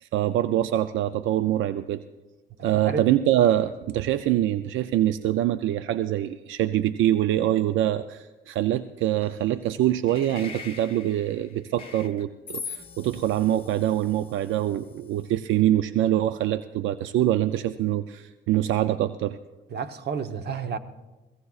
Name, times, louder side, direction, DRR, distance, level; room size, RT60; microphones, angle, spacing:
voice 1, 0.0-2.0 2.6-19.4, right 12 dB, 80° right, 0.4 m, -24 dB
voice 2, 2.7-3.0 19.7-20.8, right 6 dB, 55° right, 1.0 m, -31 dB
sound 1, 10.1-15.4, left 5 dB, 30° left, 1.4 m, -42 dB
23.0 x 16.5 x 2.4 m
cardioid pair, 90°, 20 cm